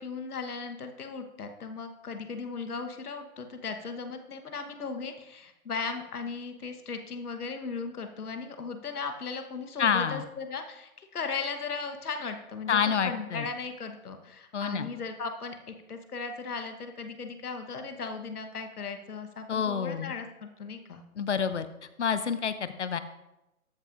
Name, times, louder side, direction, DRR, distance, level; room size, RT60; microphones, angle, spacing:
voice 1, 0.0-21.0, left 4 dB, 85° left, 6 dB, 1.2 m, -37 dB
voice 2, 9.8-10.2 12.7-13.5 14.5-14.9 19.5-20.1 21.2-21.7 22.0-23.0, left 7 dB, 55° left, 12 dB, 0.5 m, -28 dB
13.0 x 5.7 x 2.5 m, 0.92 s
hypercardioid pair, 165°, 44 cm